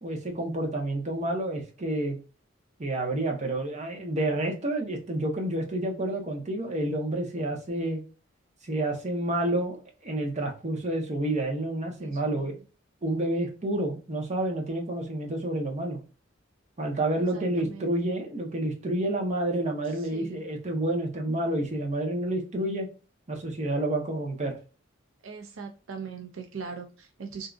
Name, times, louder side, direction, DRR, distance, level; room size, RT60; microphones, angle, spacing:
voice 1, 0.0-2.2 2.8-8.0 8.6-12.5 13.0-16.0 16.8-22.9 23.3-24.6, right 1 dB, 35° right, 2 dB, 0.9 m, -29 dB
voice 2, 12.0-12.5 17.3-17.9 19.9-20.4 25.2-27.5, right 5 dB, 70° right, 4 dB, 0.5 m, -41 dB
3.5 x 2.7 x 2.4 m, 0.34 s
head